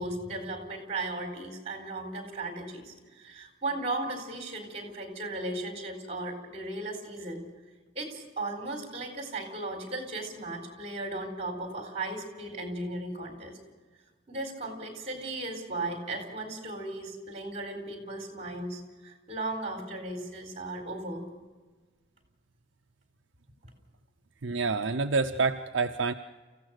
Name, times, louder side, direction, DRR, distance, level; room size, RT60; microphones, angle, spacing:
voice 1, 0.0-7.5 7.9-13.6 14.3-21.2, right 2 dB, 35° right, 4 dB, 4.0 m, -36 dB
voice 2, 24.4-26.1, right 4 dB, 65° right, 6 dB, 0.6 m, -27 dB
29.0 x 15.5 x 6.5 m, 1.4 s
head